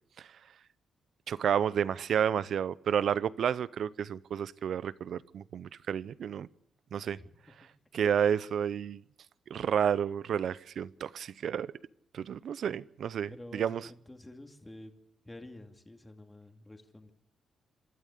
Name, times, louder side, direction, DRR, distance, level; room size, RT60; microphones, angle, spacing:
voice 1, 1.3-6.5 6.9-7.2 7.6-7.7 7.9-9.0 9.5-11.7 12.1-13.9, right 8 dB, 70° right, 0.7 m, -31 dB
voice 2, 13.3-14.9 15.2-17.1, left 1 dB, 15° left, 2.4 m, -49 dB
26.0 x 13.0 x 8.3 m
cardioid pair, 75°, 0 cm